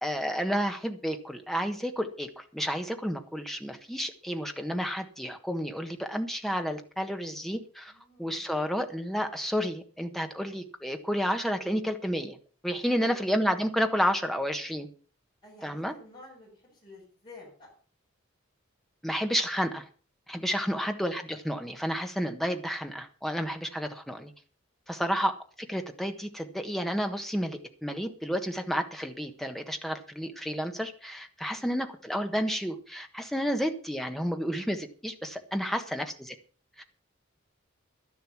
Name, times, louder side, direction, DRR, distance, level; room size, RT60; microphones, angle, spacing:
voice 1, 0.0-7.9 8.2-12.4 12.6-14.9 15.6-15.9 19.0-19.9 20.3-24.3 24.9-25.3 25.7-36.3 36.8-36.9, equal, ahead, 5 dB, 1.3 m, -31 dB
voice 2, 7.9-8.4 12.8-13.2 15.4-17.7 20.5-20.9 23.6-23.8 24.9-25.1 31.5-31.7 35.6-35.9, left 2 dB, 20° left, -6 dB, 7.5 m, -52 dB
12.0 x 10.5 x 6.0 m, 0.40 s
head